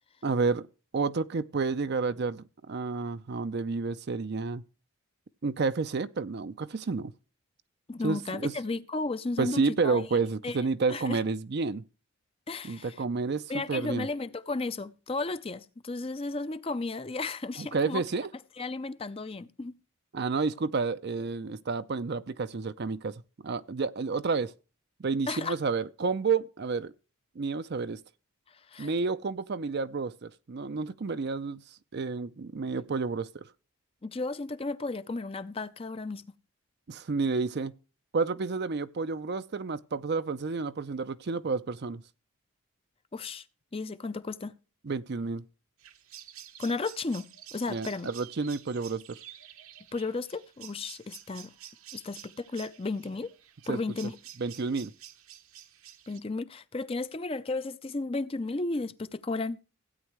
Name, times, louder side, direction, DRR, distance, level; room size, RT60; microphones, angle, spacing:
voice 1, 0.2-0.7 0.9-4.6 5.4-7.1 8.0-8.5 9.4-11.8 12.6-14.1 17.6-18.3 20.1-24.5 25.0-26.9 27.4-28.0 28.8-31.6 31.9-33.5 36.9-37.7 38.1-42.0 44.8-45.4 47.7-49.2 53.7-53.8 54.4-54.9, right 4 dB, 45° right, 0.5 m, -30 dB
voice 2, 7.9-10.1 10.4-10.6 10.9-11.2 12.5-13.0 13.5-18.0 18.6-19.7 25.3-25.6 28.5-28.9 34.0-36.2 43.1-43.5 43.7-44.5 46.6-48.1 49.9-51.5 51.9-53.3 53.7-54.1 56.1-59.6, left 3 dB, 25° left, 0.5 m, -34 dB
sound 1, 45.8-56.2, right 11 dB, 70° right, 1.0 m, -50 dB
16.0 x 8.9 x 3.1 m
head